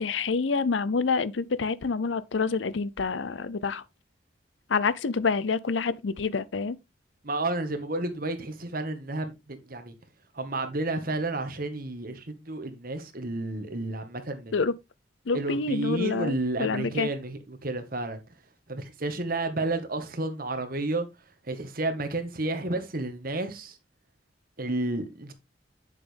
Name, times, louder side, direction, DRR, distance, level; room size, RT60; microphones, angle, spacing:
voice 1, 0.0-3.8 4.7-6.8 14.5-14.7 15.3-17.1, left 4 dB, 80° left, 0.6 m, -27 dB
voice 2, 7.2-9.9 10.3-14.5 15.3-18.2 18.7-21.1 21.5-23.8 24.6-25.3, right 2 dB, 50° right, 1.5 m, -31 dB
8.4 x 7.1 x 3.4 m
head